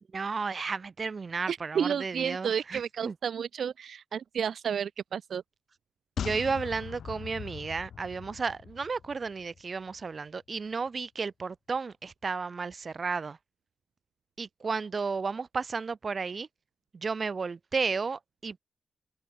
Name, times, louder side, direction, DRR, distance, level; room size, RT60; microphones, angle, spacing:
voice 1, 0.1-3.2 6.2-13.4 14.4-16.5 16.9-18.6, right 4 dB, 40° right, 0.9 m, -33 dB
voice 2, 1.5-5.4, right 7 dB, 75° right, 0.3 m, -31 dB
sound 1, 6.2-9.6 9.9-10.0, left 8 dB, 90° left, 1.3 m, -40 dB
wide cardioid pair, 165°, 0 cm